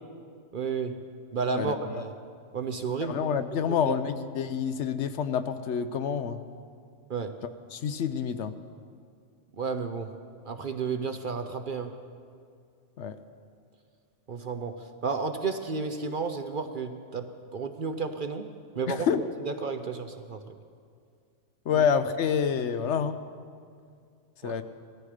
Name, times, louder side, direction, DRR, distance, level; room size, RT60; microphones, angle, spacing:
voice 1, 0.5-1.0 1.3-2.1 2.5-3.2 3.6-3.9 7.1-7.4 9.6-10.1 10.4-11.9 14.3-18.5 18.7-19.1 19.4-20.4 21.7-21.8 24.4-24.6, right 5 dB, 50° right, 8 dB, 0.7 m, -32 dB
voice 2, 1.5-2.0 3.0-6.4 7.7-8.5 13.0-13.2 18.9-19.2 21.7-23.2 24.4-24.6, left 7 dB, 70° left, 11 dB, 0.9 m, -28 dB
18.0 x 13.5 x 4.9 m, 2.2 s
omnidirectional pair, 1.3 m